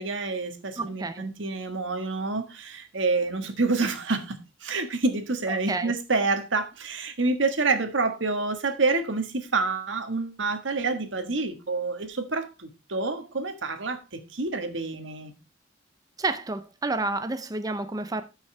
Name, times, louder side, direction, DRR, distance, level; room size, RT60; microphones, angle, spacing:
voice 1, 0.0-14.0 14.3-15.3, right 3 dB, 90° right, 1.5 m, -28 dB
voice 2, 0.8-1.3 5.7-5.9 16.2-18.2, right 3 dB, 20° right, 0.6 m, -29 dB
13.5 x 5.6 x 3.3 m
head